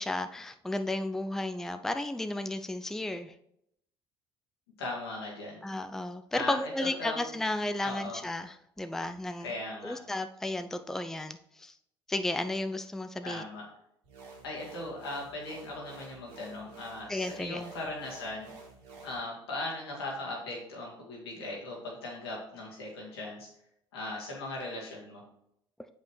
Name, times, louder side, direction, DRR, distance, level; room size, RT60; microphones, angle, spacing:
voice 1, 0.0-3.3 5.6-9.5 9.8-11.7 12.1-13.4 17.1-17.6, left 1 dB, 5° left, 9 dB, 0.4 m, -33 dB
voice 2, 4.8-5.6 6.3-7.2 7.8-8.2 9.4-10.0 13.2-13.6 14.4-18.5 19.0-23.5 23.9-25.2, left 2 dB, 90° left, -3 dB, 1.9 m, -38 dB
sound 1, 14.0-19.2, right 4 dB, 75° right, 2.1 m, -50 dB
6.7 x 5.2 x 3.2 m, 0.76 s
hypercardioid pair, 60°, 13 cm